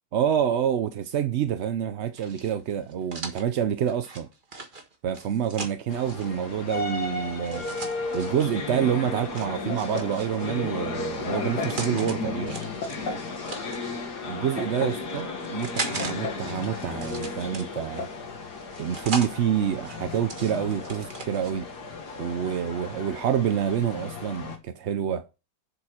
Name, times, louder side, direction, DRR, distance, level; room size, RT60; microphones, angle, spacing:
voice 1, 0.1-4.3 5.0-7.7 8.1-12.6 14.2-18.1 18.8-21.7 22.2-25.3, right 9 dB, 65° right, 0.7 m, -27 dB
sound 1, 2.2-6.3 7.4-8.5 9.4-10.6 11.3-12.2 12.5-14.0 14.6-16.1 16.4-18.0 18.5-19.3 19.8-21.5, right 3 dB, 30° right, 1.5 m, -38 dB
sound 2, 5.9-24.6, left 3 dB, 70° left, 2.2 m, -34 dB
sound 3, 9.7-10.2 11.3-11.8 12.8-13.3 14.3-15.0 16.0-16.5 16.8-16.9 17.8-18.2, left 3 dB, 85° left, 2.4 m, -35 dB
7.9 x 7.1 x 4.8 m
omnidirectional pair, 1.8 m